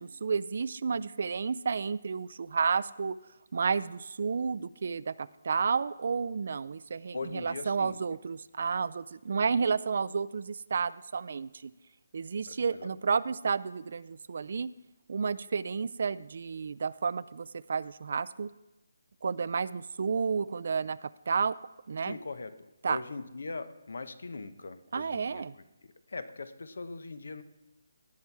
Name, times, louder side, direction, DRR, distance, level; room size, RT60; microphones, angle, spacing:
voice 1, 0.0-3.2 3.5-11.7 12.1-14.7 15.1-18.5 19.2-21.5 21.9-22.2 22.8-23.0 24.9-25.5, right 5 dB, 50° right, 18 dB, 0.3 m, -31 dB
voice 2, 7.1-8.0 12.5-12.9 22.0-22.5 22.9-25.4 26.1-27.4, left 3 dB, 70° left, 12 dB, 0.9 m, -40 dB
17.0 x 5.8 x 4.7 m, 1.0 s
hypercardioid pair, 170°, 0 cm